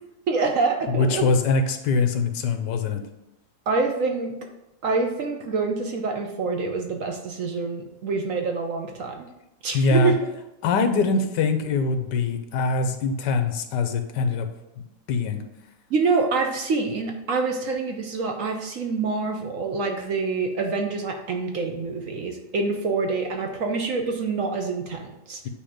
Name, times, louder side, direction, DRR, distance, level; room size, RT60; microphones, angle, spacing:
voice 1, 0.3-1.3 3.7-4.3 4.8-9.3 9.6-10.2 15.9-25.5, right 4 dB, 60° right, 3 dB, 1.0 m, -26 dB
voice 2, 0.9-3.0 9.7-10.1 10.6-14.5 15.1-15.4, left 3 dB, 90° left, 7 dB, 1.4 m, -23 dB
8.5 x 2.8 x 5.0 m, 0.86 s
omnidirectional pair, 1.8 m